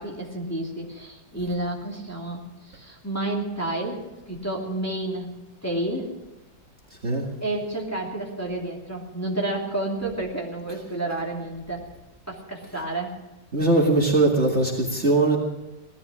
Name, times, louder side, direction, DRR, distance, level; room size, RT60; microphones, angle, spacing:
voice 1, 0.0-4.0 4.3-5.3 5.6-6.1 7.4-11.9 12.3-13.2, right 2 dB, 10° left, -2 dB, 2.7 m, -30 dB
voice 2, 13.5-15.4, right 2 dB, 35° right, -1 dB, 2.0 m, -20 dB
17.5 x 13.0 x 6.1 m, 0.99 s
omnidirectional pair, 2.0 m